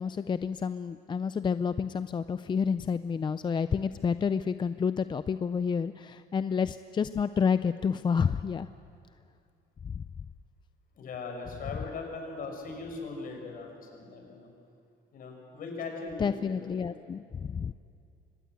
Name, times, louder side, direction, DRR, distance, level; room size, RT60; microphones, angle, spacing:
voice 1, 0.0-8.7 9.9-10.0 16.2-17.7, left 6 dB, 25° left, 12 dB, 0.5 m, -29 dB
voice 2, 10.9-14.5 15.1-16.9, left 4 dB, 55° left, 2 dB, 5.7 m, -40 dB
24.0 x 20.0 x 7.9 m, 2.4 s
cardioid pair, 110°, 17 cm